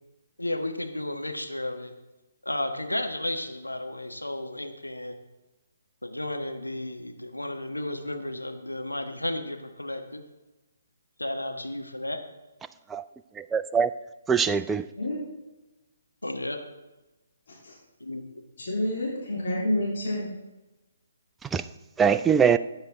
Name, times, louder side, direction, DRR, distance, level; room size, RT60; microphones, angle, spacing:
voice 1, 0.4-1.9 2.4-5.2 6.0-10.2 11.2-12.2 16.2-16.6 18.0-18.4, left 1 dB, 90° left, 5 dB, 1.2 m, -33 dB
voice 2, 13.4-13.9 14.3-14.9 21.5-21.6 22.0-22.6, right 7 dB, 10° right, 12 dB, 0.3 m, -22 dB
voice 3, 18.6-20.3, left 1 dB, 55° left, -4 dB, 3.2 m, -28 dB
13.0 x 8.9 x 3.7 m, 1.1 s
figure-of-eight pair, 135°, 0 cm